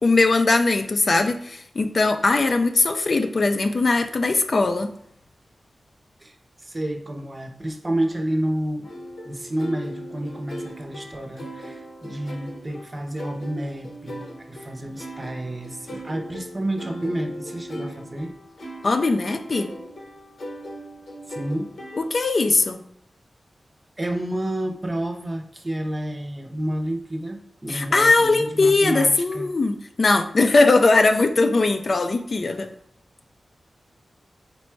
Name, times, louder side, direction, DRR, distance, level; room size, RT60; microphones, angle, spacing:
voice 1, 0.0-4.9 18.8-19.7 21.9-22.8 27.7-32.7, left 3 dB, 55° left, 7 dB, 0.4 m, -20 dB
voice 2, 6.2-8.9 9.2-18.4 21.3-21.8 24.0-29.5, right 1 dB, 30° right, 5 dB, 0.6 m, -30 dB
sound 1, 8.8-22.4, equal, 80° left, 0.9 m, -38 dB
4.0 x 2.2 x 4.4 m, 0.69 s
cardioid pair, 65°, 0 cm